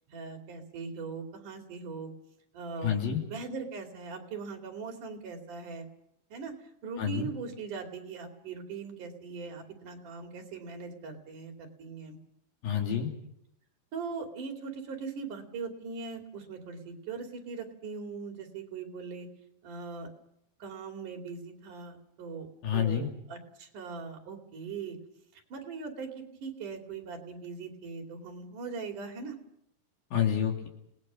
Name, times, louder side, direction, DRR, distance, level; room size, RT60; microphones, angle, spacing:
voice 1, 0.1-2.1 2.5-3.0 3.2-5.9 6.3-6.5 6.8-12.2 13.9-19.3 19.6-20.1 20.6-25.0 25.3-29.4, right 5 dB, 65° right, 4 dB, 4.2 m, -40 dB
voice 2, 2.8-3.2 7.0-7.3 12.6-13.1 22.6-23.1 30.1-30.7, left 8 dB, 80° left, 2 dB, 4.7 m, -28 dB
29.5 x 19.0 x 6.3 m, 0.77 s
omnidirectional pair, 4.0 m